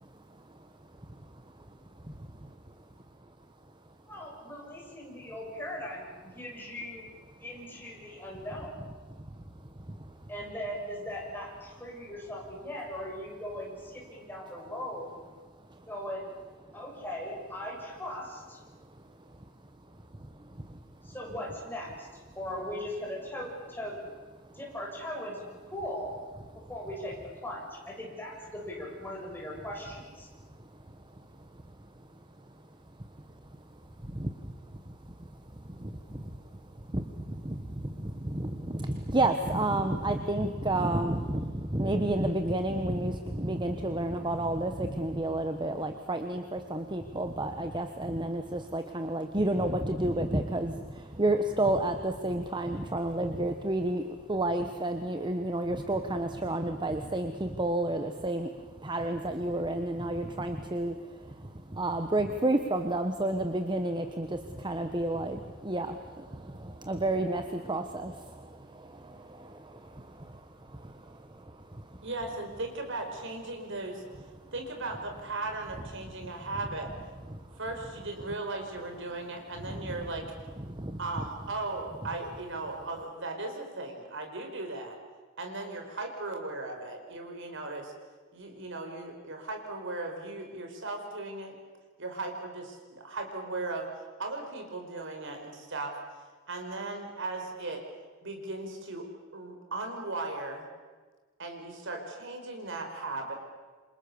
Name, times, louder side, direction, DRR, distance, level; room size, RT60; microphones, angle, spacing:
voice 1, 0.0-2.9 7.4-7.5 8.1-8.2 9.1-10.3 15.7-15.9 18.7-19.4 19.9-21.1 24.4-24.6 26.5-26.7 30.2-32.1 32.4-32.6 33.0-33.4 33.7-72.0 74.4-74.5 76.2-76.3 77.3-77.6 79.7-79.9 80.7-81.0, right 1 dB, 20° right, 7 dB, 1.3 m, -32 dB
voice 2, 4.1-7.1 7.4-8.8 10.3-15.2 15.9-16.3 16.7-18.6 21.0-22.1 22.4-24.0 24.5-26.1 26.5-30.3, left 1 dB, 10° left, -2 dB, 7.4 m, -39 dB
voice 3, 72.0-74.0 74.5-76.9 77.6-80.3 81.0-85.0 85.4-87.9 88.3-91.6 92.0-96.0 96.5-97.8 98.2-99.1 99.3-100.7 101.4-103.3, right 2 dB, 60° right, 4 dB, 5.1 m, -37 dB
28.5 x 26.5 x 7.1 m, 1.4 s
head